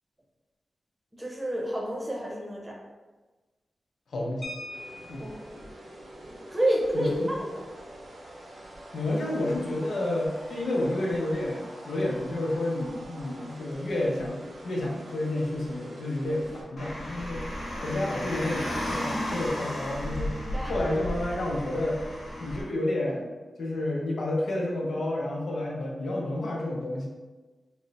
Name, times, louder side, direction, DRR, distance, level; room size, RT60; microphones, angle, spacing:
voice 1, 1.2-2.8 5.2-5.6 6.2-7.5 20.3-20.7, right 1 dB, 15° right, -2 dB, 0.7 m, -29 dB
voice 2, 4.1-4.4 5.1-5.3 6.9-7.3 8.9-17.4 17.8-20.3 20.7-22.0 22.4-23.3 23.6-27.1, left 1 dB, 85° left, -3 dB, 0.7 m, -30 dB
sound 1, 4.4-5.5 6.9-7.1 7.4-7.6 8.0-8.3, left 1 dB, 25° left, 0.7 m, -42 dB
sound 2, 4.6-16.6, right 1 dB, 80° right, 0.7 m, -46 dB
Car, 16.8-22.6, equal, 60° left, 1.0 m, -34 dB
3.1 x 2.0 x 3.9 m, 1.2 s
wide cardioid pair, 105°, 0 cm